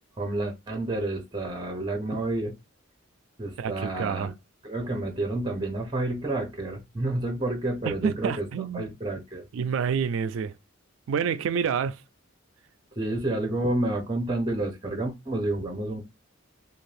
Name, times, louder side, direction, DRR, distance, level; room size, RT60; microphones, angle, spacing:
voice 1, 0.2-2.5 3.4-4.3 4.6-9.5 13.0-16.0, right 2 dB, 20° right, 0.6 m, -29 dB
voice 2, 3.6-4.3 7.8-8.9 9.5-10.5 11.1-12.0, right 7 dB, 70° right, 0.3 m, -28 dB
2.6 x 2.3 x 3.1 m
head